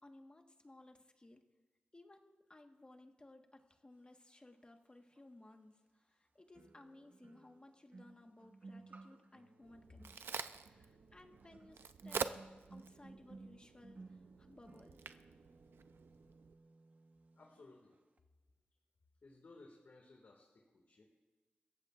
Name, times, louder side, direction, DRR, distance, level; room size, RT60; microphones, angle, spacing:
voice 1, 0.0-1.4 1.9-10.4 10.6-12.2 12.7-15.1, left 2 dB, 25° left, 4 dB, 1.4 m, -60 dB
sound 1, 5.2-5.3 6.5-17.6 17.9-18.2, right 3 dB, 50° right, 1.1 m, -59 dB
Crack, 9.6-16.5, right 6 dB, 90° right, 0.5 m, -47 dB
voice 2, 17.3-18.0 19.2-21.0, left 3 dB, 60° left, 0 dB, 2.0 m, -60 dB
26.5 x 15.0 x 2.5 m, 1.2 s
wide cardioid pair, 75°, 4 cm